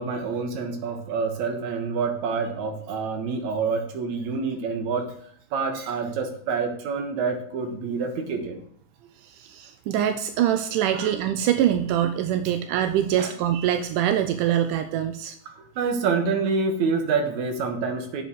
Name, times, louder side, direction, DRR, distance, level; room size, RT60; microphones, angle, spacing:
voice 1, 0.0-5.1 5.5-8.6 10.9-11.1 12.5-12.6 13.2-13.3 15.5-18.2, right 5 dB, 65° right, 5 dB, 2.8 m, -27 dB
voice 2, 9.2-15.4, right 10 dB, 85° right, 8 dB, 2.3 m, -24 dB
7.9 x 7.1 x 6.4 m, 0.67 s
omnidirectional pair, 3.6 m